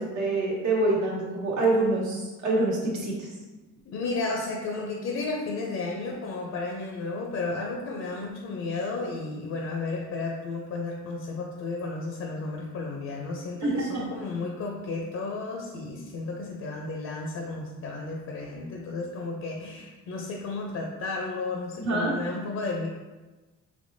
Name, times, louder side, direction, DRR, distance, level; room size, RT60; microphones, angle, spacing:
voice 1, 0.0-3.3 13.6-14.0 21.8-22.1, right 2 dB, 70° right, -4 dB, 1.2 m, -26 dB
voice 2, 3.9-22.9, left 3 dB, 60° left, 0 dB, 0.5 m, -33 dB
3.4 x 2.9 x 2.6 m, 1.2 s
cardioid pair, 90°, 30 cm